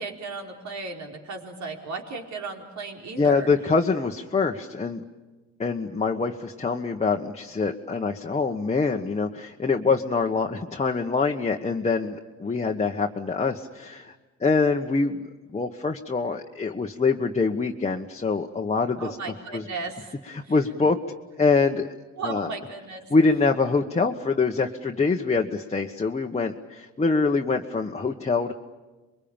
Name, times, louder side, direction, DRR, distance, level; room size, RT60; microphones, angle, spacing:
voice 1, 0.0-3.5 19.0-20.2 20.4-20.6 22.2-23.0, right 4 dB, 65° right, 2 dB, 4.6 m, -35 dB
voice 2, 3.2-5.0 5.6-14.1 14.4-15.2 15.5-19.1 19.5-19.6 20.3-21.0 21.4-21.9 22.2-22.5 23.1-28.5, left 4 dB, 20° left, 2 dB, 1.3 m, -24 dB
28.0 x 22.5 x 8.9 m, 1.2 s
cardioid pair, 90°, 30 cm